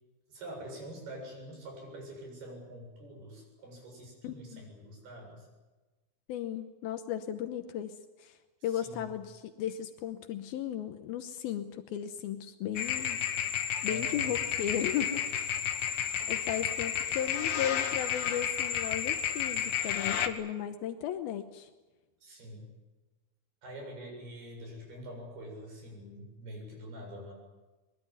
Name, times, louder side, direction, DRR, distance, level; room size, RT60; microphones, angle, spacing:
voice 1, 0.3-5.5 8.6-9.1 13.9-14.3 22.2-22.7 23.6-27.3, right 1 dB, 80° right, 1 dB, 9.5 m, -45 dB
voice 2, 4.2-4.7 6.3-8.4 8.6-13.2 13.8-15.6 16.3-21.7, left 10 dB, 80° left, 8 dB, 2.8 m, -36 dB
sound 1, 12.8-20.3, left 8 dB, 65° left, 2.7 m, -32 dB
23.0 x 22.0 x 9.5 m, 1.2 s
omnidirectional pair, 4.4 m